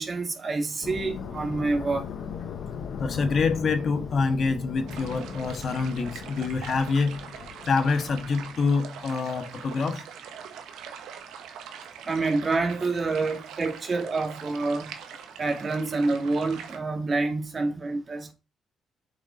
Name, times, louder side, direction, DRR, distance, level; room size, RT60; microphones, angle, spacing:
voice 1, 0.0-2.1 12.1-14.9 15.4-18.3, right 3 dB, 35° right, 2.4 m, -27 dB
sound 1, 0.8-9.1, left 6 dB, 65° left, 1.2 m, -38 dB
voice 2, 3.0-7.2 7.6-10.0, left 4 dB, 50° left, 1.6 m, -26 dB
sound 2, 4.9-16.8, right 7 dB, 85° right, 1.4 m, -43 dB
7.8 x 5.0 x 5.2 m
cardioid pair, 90°, 0 cm